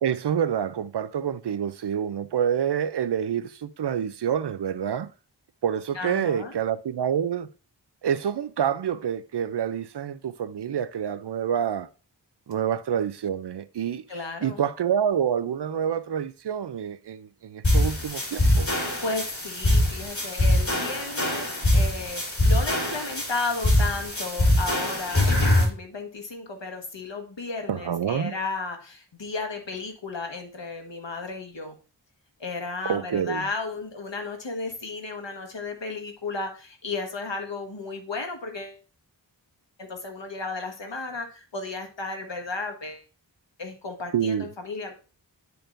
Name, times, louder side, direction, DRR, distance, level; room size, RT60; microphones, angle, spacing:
voice 1, 0.0-5.1 5.6-7.5 8.0-11.9 12.5-14.0 14.4-18.7 27.7-28.3 32.9-33.5 44.1-44.5, right 8 dB, 65° right, 0.5 m, -27 dB
voice 2, 5.9-6.5 14.1-14.6 19.0-31.8 32.4-38.8 39.8-43.0 43.6-44.9, left 3 dB, 70° left, 1.4 m, -34 dB
sound 1, 17.6-25.6, left 1 dB, 40° left, 3.5 m, -23 dB
10.5 x 4.7 x 2.5 m
wide cardioid pair, 45°, 45 cm